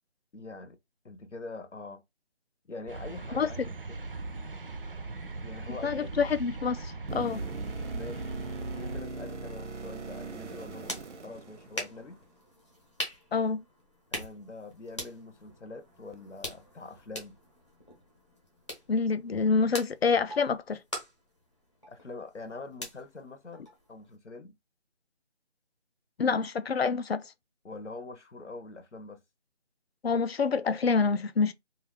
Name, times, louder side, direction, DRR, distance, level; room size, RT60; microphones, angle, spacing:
voice 1, 0.3-0.8 1.0-2.0 2.6-3.6 5.4-6.2 7.9-11.0 11.2-12.2 14.1-17.4 21.9-24.5 27.6-29.2, left 3 dB, 90° left, 0.9 m, -44 dB
sound 1, 2.9-9.0, right 3 dB, 50° right, 0.4 m, -39 dB
voice 2, 5.7-7.4 13.3-13.6 18.9-20.8 26.2-27.2 30.0-31.5, left 5 dB, 60° left, 0.4 m, -27 dB
sound 2, 7.1-12.1 16.1-16.2, right 3 dB, 85° right, 0.7 m, -40 dB
sound 3, 10.4-24.2, equal, 25° left, 0.8 m, -44 dB
2.4 x 2.3 x 3.4 m
figure-of-eight pair, 170°, 35 cm